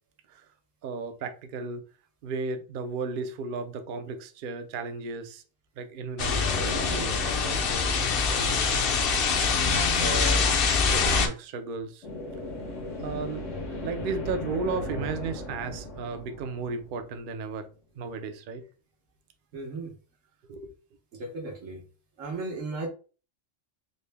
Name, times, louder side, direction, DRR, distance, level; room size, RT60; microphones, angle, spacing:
voice 1, 0.8-1.8 2.2-5.4 5.8-9.1 9.7-10.5 10.9-12.1 13.0-13.4 13.8-17.7 18.0-18.6 20.5-20.7, right 4 dB, 60° right, 0.5 m, -35 dB
sound 1, 6.2-11.3, left 5 dB, 60° left, 0.7 m, -24 dB
sound 2, 6.4-9.2 12.0-17.4, left 1 dB, 80° left, 1.4 m, -37 dB
voice 2, 19.5-19.9 21.1-21.8 22.2-22.9, right 3 dB, 85° right, 1.3 m, -35 dB
3.8 x 2.1 x 3.3 m
omnidirectional pair, 1.3 m